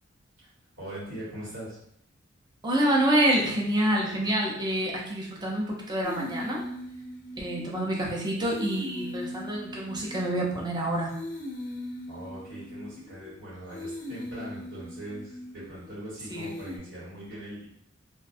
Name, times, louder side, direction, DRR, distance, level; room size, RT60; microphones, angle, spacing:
voice 1, 0.8-1.8 12.1-17.7, right 1 dB, 85° right, -8 dB, 1.4 m, -41 dB
voice 2, 2.6-6.6 7.4-11.1 16.3-16.5, right 1 dB, 20° right, -2 dB, 0.5 m, -27 dB
sound 1, 6.0-8.1 8.5-10.7 11.1-13.3 13.7-15.9 16.3-16.8, left 1 dB, 40° left, 0.4 m, -39 dB
2.3 x 2.2 x 2.5 m, 0.69 s
head